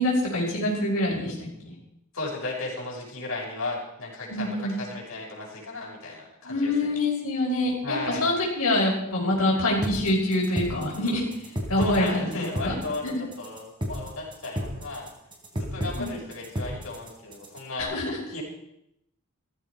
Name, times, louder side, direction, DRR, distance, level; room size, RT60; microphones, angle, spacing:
voice 1, 0.0-1.8 4.3-4.8 6.4-12.7 13.0-13.2 16.0-16.1 17.9-18.2, left 1 dB, 85° left, -5 dB, 5.6 m, -26 dB
voice 2, 2.1-7.0 7.8-8.3 11.8-15.1 15.5-17.9 18.3-18.4, left 2 dB, 65° left, -4 dB, 6.1 m, -35 dB
sound 1, 9.8-17.8, equal, 20° right, 3.3 m, -33 dB
17.0 x 14.5 x 5.0 m, 0.80 s
head